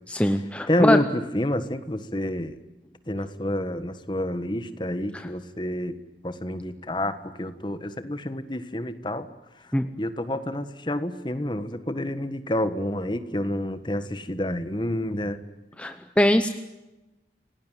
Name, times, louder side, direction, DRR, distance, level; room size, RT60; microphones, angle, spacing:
voice 1, 0.1-1.0 5.1-5.3 9.7-9.9 15.8-16.5, left 1 dB, 5° left, 8 dB, 0.9 m, -22 dB
voice 2, 0.7-2.5 3.1-6.0 6.2-9.3 10.0-15.4, left 1 dB, 25° left, 11 dB, 1.5 m, -28 dB
28.5 x 19.0 x 9.3 m, 1.1 s
head